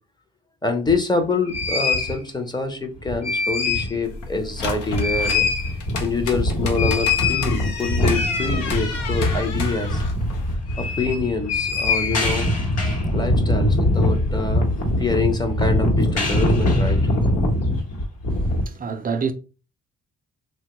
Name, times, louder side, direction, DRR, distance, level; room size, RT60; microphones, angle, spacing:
voice 1, 0.6-5.5 6.0-10.0 10.8-12.5 13.1-14.7 15.0-17.0, left 4 dB, 15° left, 0.6 m, -26 dB
sound 1, 0.9-1.0 1.5-2.2 3.0-4.0 4.3-4.4 4.7-18.6, left 1 dB, 55° left, 1.0 m, -22 dB
sound 2, 4.0-10.5, left 4 dB, 85° left, 0.7 m, -32 dB
voice 2, 18.3-19.3, right 5 dB, 30° right, 0.4 m, -28 dB
3.1 x 2.2 x 2.9 m
cardioid pair, 90°, 30 cm